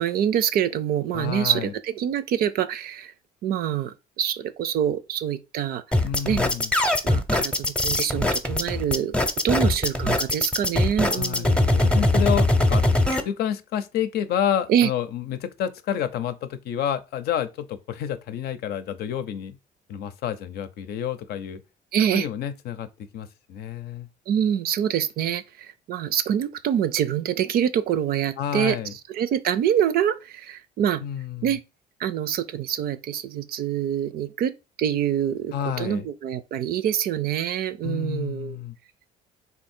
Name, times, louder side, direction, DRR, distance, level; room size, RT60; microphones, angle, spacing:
voice 1, 0.0-3.1 3.4-5.8 6.3-6.4 7.0-9.1 9.4-11.8 14.7-14.9 21.9-22.3 24.3-28.8 29.1-31.0 31.4-31.6 32.0-38.6, right 9 dB, 65° right, 0.5 m, -25 dB
voice 2, 1.1-1.7 6.0-6.7 11.1-11.5 11.8-12.8 13.2-19.6 19.9-21.6 22.1-22.9 23.1-24.1 28.4-28.9 31.0-31.6 35.5-36.1 37.8-38.7, left 9 dB, 70° left, 0.6 m, -29 dB
sound 1, 5.9-13.2, left 1 dB, 5° left, 0.7 m, -21 dB
3.9 x 2.8 x 4.3 m
cardioid pair, 110°, 17 cm